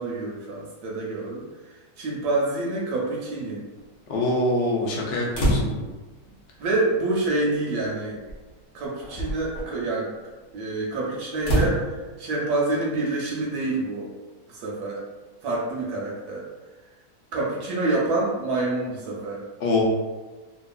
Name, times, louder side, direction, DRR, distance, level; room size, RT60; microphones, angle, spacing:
voice 1, 0.0-1.4 2.0-3.6 6.6-8.2 8.7-10.1 10.5-14.1 14.5-15.0 15.4-16.4 17.3-19.4, right 2 dB, 75° right, -3 dB, 1.1 m, -27 dB
voice 2, 4.1-5.8 19.6-19.8, left 2 dB, 75° left, -2 dB, 0.5 m, -24 dB
sound 1, 5.3-6.0 7.2-7.3 8.3-8.5 9.0-9.6 11.4-11.8, right 1 dB, 55° left, 0.9 m, -25 dB
2.8 x 2.3 x 2.3 m, 1.3 s
omnidirectional pair, 1.8 m